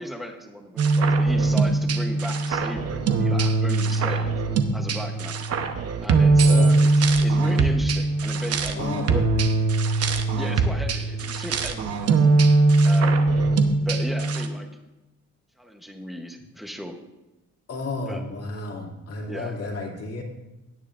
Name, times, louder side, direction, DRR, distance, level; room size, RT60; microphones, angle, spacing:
voice 1, 0.0-4.3 4.7-5.4 6.0-9.3 10.3-12.3 12.8-13.3 13.8-14.7 15.6-17.0 18.1-18.2 19.3-19.5, equal, ahead, 4 dB, 0.9 m, -36 dB
sound 1, 0.8-14.5, right 3 dB, 55° right, 0.9 m, -21 dB
voice 2, 6.4-6.8 8.8-9.2 17.7-20.2, left 3 dB, 55° left, -1 dB, 2.2 m, -32 dB
17.5 x 9.3 x 2.5 m, 1.0 s
cardioid pair, 180°, 29 cm